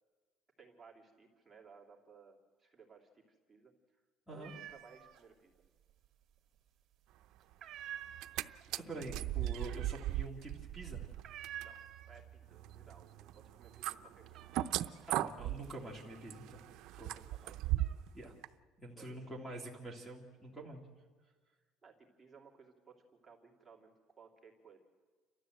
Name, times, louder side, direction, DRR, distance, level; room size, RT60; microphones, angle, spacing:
voice 1, 0.6-4.0 4.3-5.5 11.6-11.8 12.1-14.5 17.1-17.6 19.0-19.2 21.5-24.8, right 5 dB, 10° right, -2 dB, 2.7 m, -60 dB
sound 1, 4.4-5.2 5.6-6.3 6.7-7.1 7.4-12.5 12.8-13.4 13.7-16.8 17.3-17.9, right 11 dB, 40° right, 2.0 m, -50 dB
sound 2, 8.0-8.4 8.7-18.1 18.4-18.5, right 14 dB, 60° right, 0.6 m, -38 dB
voice 2, 8.7-11.1 15.1-16.6 16.9-17.1 18.1-18.4 18.8-20.8, right 1 dB, 5° left, 0 dB, 2.3 m, -46 dB
29.5 x 13.0 x 7.8 m, 1.4 s
cardioid pair, 155°, 0 cm